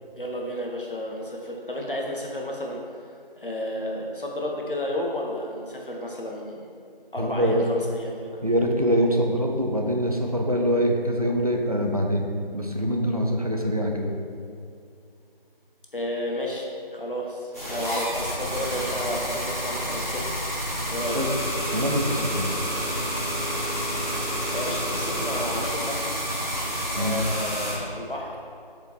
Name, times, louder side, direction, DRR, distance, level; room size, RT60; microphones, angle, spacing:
voice 1, 0.1-2.8 3.4-6.7 7.1-8.1 15.9-20.3 20.9-21.2 24.5-26.1 26.9-28.4, left 1 dB, 60° left, -1 dB, 1.5 m, -32 dB
voice 2, 7.2-7.7 8.4-12.3 12.5-14.1 21.1-21.3 21.7-22.6 27.0-27.2, equal, 40° right, 1 dB, 0.8 m, -24 dB
sound 1, 17.5-27.7, equal, 15° left, 1.6 m, -29 dB
7.8 x 5.2 x 4.6 m, 2.5 s
figure-of-eight pair, 175°, 29 cm